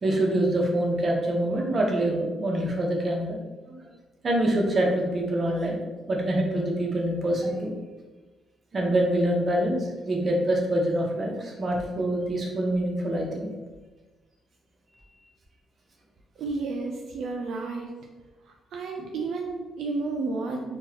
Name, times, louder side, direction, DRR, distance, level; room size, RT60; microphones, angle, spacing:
voice 1, 0.0-3.4 3.7-3.8 4.2-5.8 6.1-7.7 8.7-13.5 19.0-19.1, right 1 dB, 35° right, -1 dB, 0.8 m, -25 dB
voice 2, 16.4-17.9 18.7-20.8, right 3 dB, 70° right, 1 dB, 0.3 m, -31 dB
3.8 x 2.3 x 2.8 m, 1.2 s
cardioid pair, 90°, 0 cm